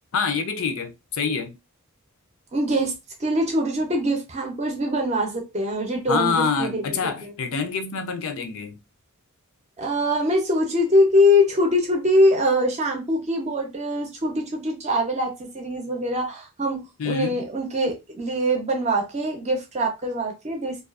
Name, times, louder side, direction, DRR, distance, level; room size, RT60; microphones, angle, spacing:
voice 1, 0.1-1.6 6.1-8.8 17.0-17.4, left 5 dB, 65° left, 0.4 m, -26 dB
voice 2, 2.5-2.9 3.2-6.3 6.6-6.8 7.2-7.3 9.8-20.8, left 1 dB, 30° right, 0.6 m, -23 dB
2.4 x 2.3 x 2.3 m
head